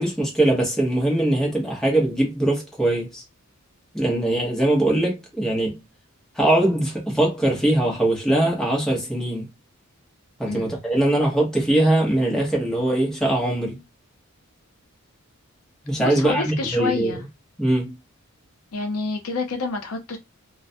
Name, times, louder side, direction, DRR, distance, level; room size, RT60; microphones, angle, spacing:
voice 1, 0.0-3.2 3.9-5.8 6.4-9.5 10.4-13.8 15.8-17.1 17.6-17.9, right 1 dB, 5° left, 0.8 m, -21 dB
voice 2, 10.4-10.8 16.0-17.2 18.7-20.2, left 3 dB, 70° left, 0.6 m, -28 dB
2.4 x 2.1 x 2.5 m
head